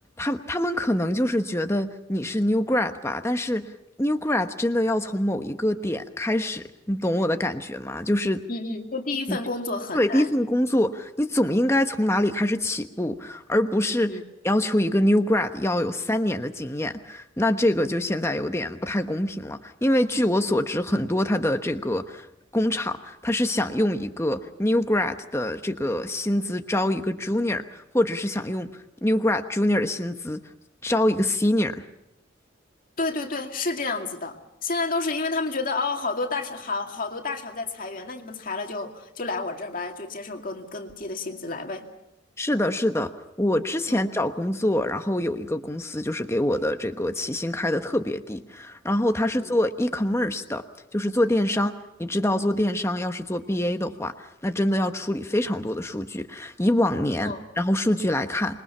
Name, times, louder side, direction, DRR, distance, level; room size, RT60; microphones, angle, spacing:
voice 1, 0.2-3.7 4.0-8.4 9.3-9.4 9.9-14.2 14.4-22.3 22.5-28.7 29.0-30.4 30.8-31.8 42.4-43.1 43.4-50.6 50.9-51.7 52.0-58.6, left 1 dB, 15° left, 7 dB, 1.1 m, -25 dB
voice 2, 8.5-10.3 14.1-14.2 33.0-41.9 43.9-44.0 49.3-49.6 51.5-51.6 57.2-57.4, left 3 dB, 45° left, 3 dB, 2.3 m, -30 dB
27.0 x 22.0 x 5.7 m, 0.84 s
head